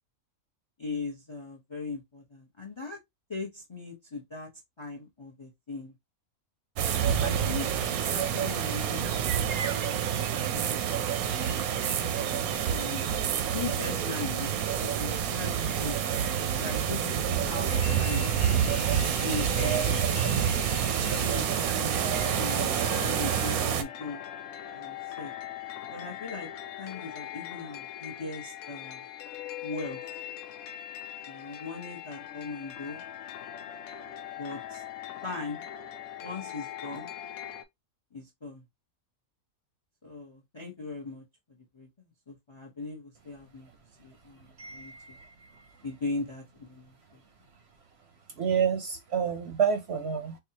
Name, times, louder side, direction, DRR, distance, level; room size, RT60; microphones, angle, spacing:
voice 1, 0.8-3.0 3.3-4.5 4.8-5.9 7.2-7.7 8.1-11.3 12.7-13.1 13.5-16.0 16.6-18.3 19.2-20.0 21.0-22.0 22.4-24.2 24.7-25.3 25.9-26.5 26.8-29.0 29.6-30.0 31.2-33.0 34.4-34.8 35.2-35.6 36.2-37.1 38.1-38.6 40.0-41.2 41.7-41.9 42.3-43.7 44.0-44.9 45.8-47.2, left 3 dB, 25° left, 0.6 m, -39 dB
sound 1, 6.8-23.8, right 9 dB, 90° right, 1.1 m, -28 dB
sound 2, 17.7-37.6, left 11 dB, 80° left, 1.0 m, -41 dB
voice 2, 44.6-45.5 48.4-50.4, right 7 dB, 60° right, 0.8 m, -29 dB
4.6 x 2.3 x 2.8 m
omnidirectional pair, 1.5 m